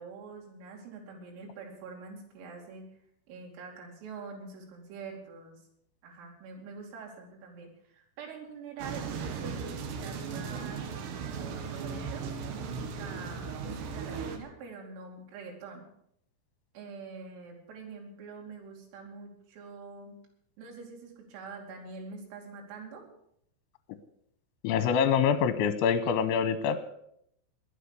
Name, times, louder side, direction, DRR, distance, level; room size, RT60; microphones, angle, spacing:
voice 1, 0.0-2.8 3.3-5.6 6.0-10.9 11.3-15.9 16.8-20.2 20.6-23.0, right 4 dB, 80° right, -1 dB, 5.4 m, -45 dB
sound 1, 8.8-14.4, right 5 dB, 65° right, 3.3 m, -37 dB
voice 2, 24.6-26.8, left 7 dB, 80° left, 12 dB, 2.9 m, -25 dB
21.0 x 8.2 x 6.8 m, 0.71 s
omnidirectional pair, 5.9 m